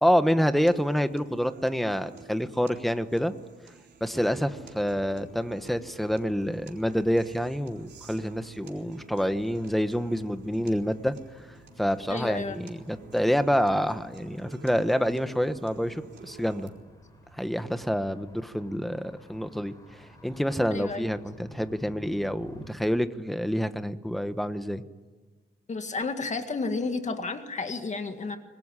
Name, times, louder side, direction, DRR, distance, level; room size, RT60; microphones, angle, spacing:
voice 1, 0.0-3.3 4.0-11.1 11.8-16.7 17.4-19.7 20.2-24.8, equal, ahead, 10 dB, 1.2 m, -27 dB
sound 1, 0.7-16.7, right 5 dB, 65° right, 4.1 m, -50 dB
sound 2, 4.3-22.7, left 1 dB, 20° left, 6.8 m, -52 dB
voice 2, 12.1-12.6 20.7-21.1 25.7-28.4, left 3 dB, 40° left, 7 dB, 1.9 m, -32 dB
25.5 x 21.5 x 9.9 m, 1.3 s
wide cardioid pair, 150°, 19 cm